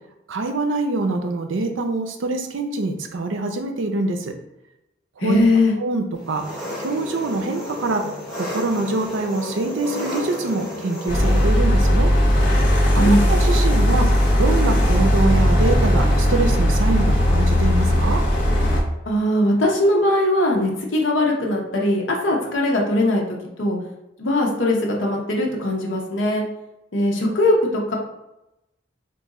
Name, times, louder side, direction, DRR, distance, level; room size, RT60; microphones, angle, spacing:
voice 1, 0.3-4.3 5.2-5.4 5.8-6.4 6.8-8.0 8.4-12.1 13.0-14.1 14.4-18.2, right 3 dB, 80° right, 5 dB, 0.5 m, -24 dB
voice 2, 5.2-5.7 13.0-13.3 19.1-23.8 24.2-26.4 26.9-28.0, left 1 dB, 75° left, -1 dB, 0.8 m, -20 dB
Engine, 6.2-11.5, left 1 dB, ahead, 0.9 m, -32 dB
sound 1, 11.1-18.8, equal, 45° left, 0.8 m, -17 dB
3.0 x 2.5 x 3.6 m, 0.90 s
head